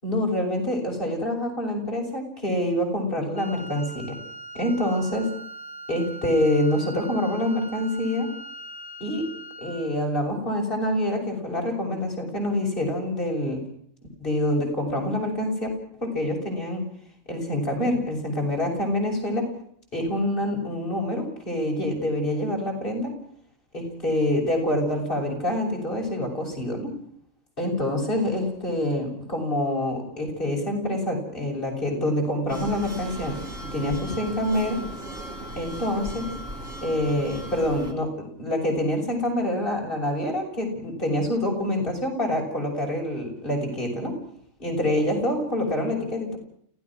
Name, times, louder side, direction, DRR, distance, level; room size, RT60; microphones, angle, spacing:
voice 1, 0.0-4.2 4.5-5.3 5.9-8.3 9.0-9.2 9.6-13.6 14.2-15.7 16.0-16.8 17.3-19.5 19.9-23.1 23.7-26.9 27.6-33.4 33.7-34.8 35.6-36.2 36.8-44.1 44.6-46.4, left 1 dB, 40° left, 0 dB, 7.0 m, -26 dB
Wind instrument woodwind instrument, 3.3-10.0, right 2 dB, 85° left, 2.3 m, -41 dB
sound 1, 32.5-37.9, right 1 dB, 80° right, 3.0 m, -37 dB
30.0 x 16.5 x 6.2 m, 0.63 s
omnidirectional pair, 1.3 m